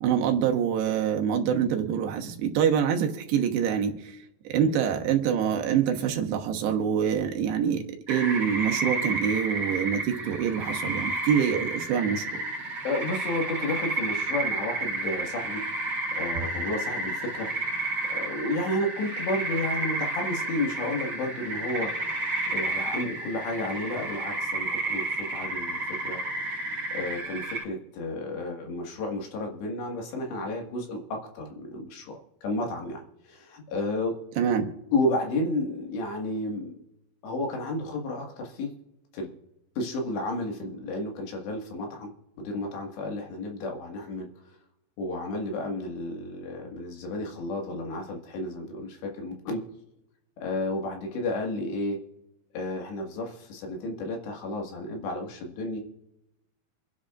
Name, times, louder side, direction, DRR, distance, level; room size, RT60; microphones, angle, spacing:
voice 1, 0.0-3.9 4.5-12.2 34.4-34.7, right 8 dB, 80° right, 3 dB, 3.3 m, -25 dB
sound 1, 8.1-27.6, right 2 dB, 35° right, 2.6 m, -31 dB
voice 2, 12.8-15.6 16.1-17.5 18.1-26.2 26.9-34.2 34.9-36.8 37.2-38.7 39.1-39.3 39.8-42.1 42.4-44.3 45.0-49.6 50.4-52.0 52.5-55.8, left 2 dB, 80° left, 1 dB, 4.0 m, -32 dB
27.0 x 10.0 x 2.5 m, 0.89 s
omnidirectional pair, 4.9 m